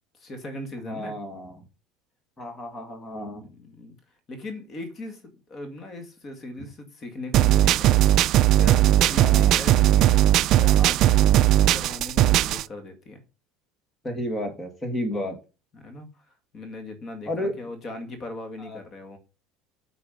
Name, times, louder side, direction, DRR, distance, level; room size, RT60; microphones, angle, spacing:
voice 1, 0.1-1.2 3.4-4.0 4.3-5.2 5.5-8.0 8.5-13.2 15.7-16.3 16.5-19.2, left 2 dB, 30° left, 2.1 m, -38 dB
voice 2, 0.9-1.5 2.4-3.4 6.6-6.7 9.2-9.5 14.0-15.4 17.3-17.5 18.7-18.8, left 1 dB, 15° left, 2.1 m, -31 dB
sound 1, 7.3-12.6, right 13 dB, 45° right, 0.3 m, -18 dB
9.0 x 4.7 x 5.3 m
cardioid pair, 150°, 0 cm